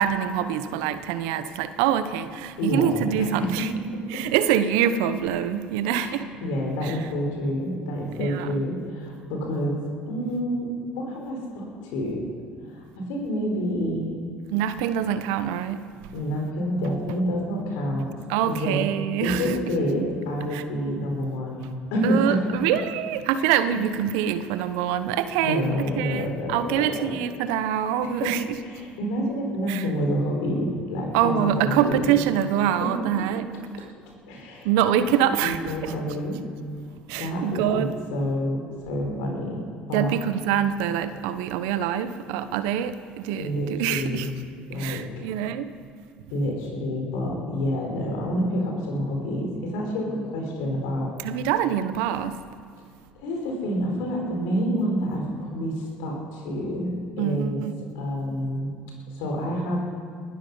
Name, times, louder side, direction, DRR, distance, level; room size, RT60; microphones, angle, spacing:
voice 1, 0.0-3.7 4.1-6.3 6.8-7.0 8.2-8.7 14.5-15.9 18.3-19.6 20.5-20.6 22.0-25.6 26.0-28.4 29.7-29.8 31.1-33.5 33.7-33.9 34.6-35.9 37.1-37.9 39.9-44.3 44.8-45.7 51.2-52.4 57.2-57.8, right 10 dB, 70° right, 12 dB, 1.0 m, -25 dB
voice 2, 2.6-3.7 3.9-4.2 5.9-9.8 10.1-12.3 12.7-14.1 16.1-18.1 18.5-18.8 19.2-22.6 25.4-27.2 28.0-28.3 28.6-32.1 32.8-32.9 34.3-34.7 35.0-36.4 37.2-39.6 39.9-40.1 43.4-44.3 44.7-45.0 46.3-51.1 52.8-52.9 53.1-57.6 57.9-58.7 59.2-59.8, equal, 70° left, 0 dB, 4.6 m, -28 dB
20.0 x 12.5 x 5.6 m, 2.1 s
hypercardioid pair, 65°, 5 cm